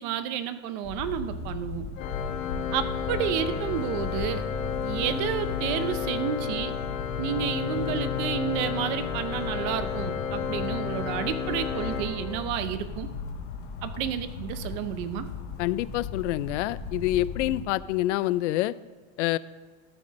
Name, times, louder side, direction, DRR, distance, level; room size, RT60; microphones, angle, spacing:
voice 1, 0.0-1.9 2.7-4.4 4.8-6.8 7.2-13.1 13.8-15.3, right 10 dB, 40° right, 12 dB, 0.6 m, -30 dB
sound 1, 0.8-17.7, left 5 dB, 25° left, 0.8 m, -36 dB
Organ, 2.0-12.8, left 8 dB, 85° left, 1.2 m, -32 dB
voice 2, 15.6-18.7 19.2-19.4, left 15 dB, 70° left, 18 dB, 0.5 m, -27 dB
13.0 x 5.8 x 5.2 m, 1.5 s
supercardioid pair, 165°, 38 cm